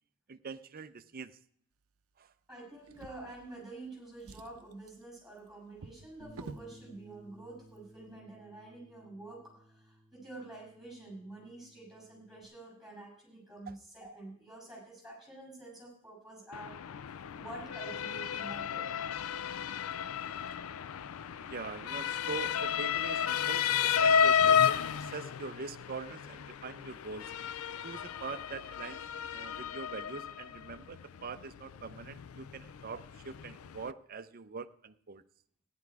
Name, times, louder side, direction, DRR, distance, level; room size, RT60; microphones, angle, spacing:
voice 1, 0.3-1.4 2.2-2.3 13.7-13.8 21.4-24.6 25.0-27.3 27.8-29.0 29.3-35.2, right 5 dB, 45° right, 12 dB, 0.6 m, -43 dB
voice 2, 2.5-19.2 28.0-28.2, right 2 dB, ahead, -3 dB, 6.9 m, -48 dB
Drawer open or close, 2.8-3.8 4.1-6.7 7.6-7.8 8.2-8.3, right 4 dB, 85° right, 0.6 m, -50 dB
Bass guitar, 6.2-12.4, equal, 60° left, 2.1 m, -58 dB
Motor vehicle (road) / Siren, 16.5-33.9, left 8 dB, 85° left, 0.4 m, -32 dB
15.0 x 10.5 x 4.7 m, 0.63 s
head